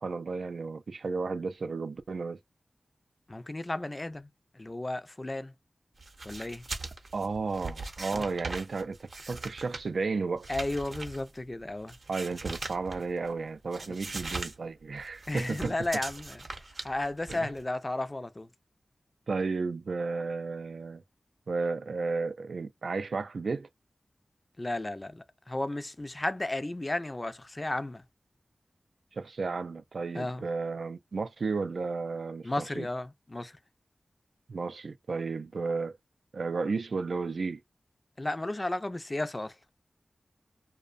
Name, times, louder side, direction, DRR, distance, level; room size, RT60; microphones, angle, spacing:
voice 1, 0.0-2.4 7.1-10.5 12.1-15.7 17.3-17.5 19.3-21.0 21.5-23.7 29.1-32.9 34.5-36.0 36.3-37.6, right 4 dB, 80° right, 0.3 m, -33 dB
voice 2, 3.3-4.3 4.5-5.5 6.2-6.6 8.1-8.3 10.5-12.0 15.3-16.4 16.8-18.5 24.6-28.0 30.1-30.5 32.4-33.6 38.2-39.6, left 2 dB, 30° left, 0.4 m, -33 dB
sound 1, 6.0-13.3 13.6-14.6 14.8-17.6, right 3 dB, 60° right, 0.7 m, -40 dB
2.5 x 2.1 x 2.4 m
wide cardioid pair, 55°, 0 cm